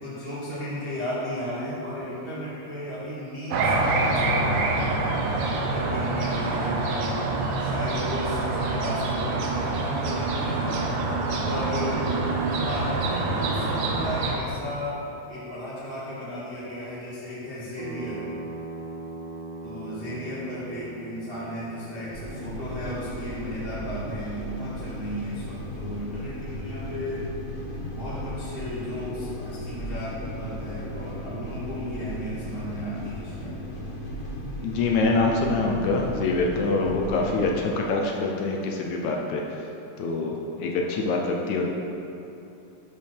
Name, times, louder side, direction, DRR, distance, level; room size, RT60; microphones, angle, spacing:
voice 1, 0.0-7.2 7.6-10.8 11.5-12.1 12.6-15.0 15.3-18.2 19.6-27.3 28.0-33.6, equal, 55° right, -10 dB, 0.6 m, -34 dB
sound 1, 3.5-14.4, right 3 dB, 75° right, 1.9 m, -26 dB
sound 2, 17.8-23.5, right 2 dB, 90° right, 2.3 m, -40 dB
sound 3, 22.1-37.5, left 1 dB, 45° left, 2.3 m, -36 dB
voice 2, 34.6-39.4 40.0-41.7, left 3 dB, 75° left, 0 dB, 1.8 m, -25 dB
10.5 x 4.7 x 4.5 m, 2.9 s
omnidirectional pair, 3.7 m